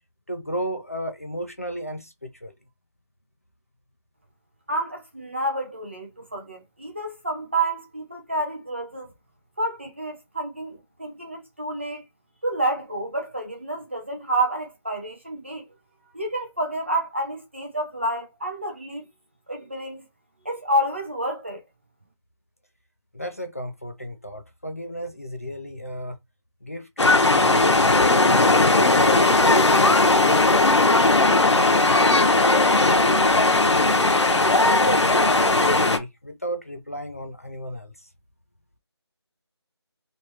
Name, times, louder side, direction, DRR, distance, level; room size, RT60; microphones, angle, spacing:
voice 1, 0.3-2.5 23.1-26.2 26.6-30.7 31.2-33.9 34.4-38.1, equal, 30° left, 0.4 m, -33 dB
voice 2, 4.7-9.1 9.6-12.0 12.4-15.7 16.1-19.1 19.5-20.0 20.4-21.6, right 1 dB, 25° right, 0.6 m, -29 dB
sound 1, 27.0-36.0, left 2 dB, 80° left, 0.9 m, -18 dB
3.1 x 2.9 x 2.8 m
figure-of-eight pair, 175°, 15 cm